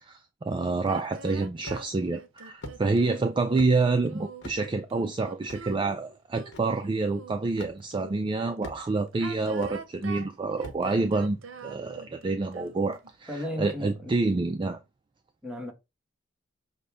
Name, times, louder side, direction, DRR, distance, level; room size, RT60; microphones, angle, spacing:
voice 1, 0.1-11.4 11.6-13.3 13.6-14.8, right 3 dB, 25° right, 0.3 m, -27 dB
sound 1, 0.9-8.4 9.1-13.1, right 3 dB, 75° right, 0.7 m, -44 dB
sound 2, 1.6-2.0 2.6-2.8 3.6-3.8 4.4-4.6 5.5-5.6 6.5-6.6 7.6-7.7 8.6-9.0 9.6-9.8 10.6-10.8, left 1 dB, 60° left, 1.0 m, -41 dB
voice 2, 13.3-14.2 15.4-15.7, left 1 dB, 5° right, 1.1 m, -35 dB
6.3 x 2.2 x 3.4 m
head